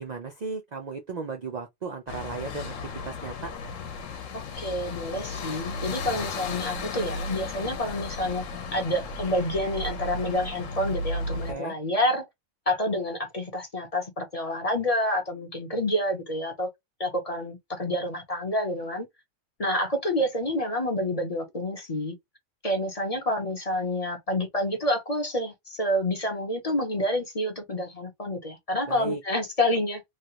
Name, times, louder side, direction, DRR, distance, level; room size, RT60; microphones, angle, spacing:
voice 1, 0.0-2.7 3.1-3.5 11.5-11.8 28.9-29.2, right 4 dB, 70° right, 0.4 m, -35 dB
sound 1, 2.1-11.5, left 3 dB, 70° left, 1.1 m, -34 dB
voice 2, 4.3-8.4 8.7-12.3 12.7-16.7 17.0-19.1 19.6-22.2 22.6-30.0, left 1 dB, 35° left, 0.7 m, -28 dB
3.2 x 2.4 x 2.8 m
omnidirectional pair, 1.5 m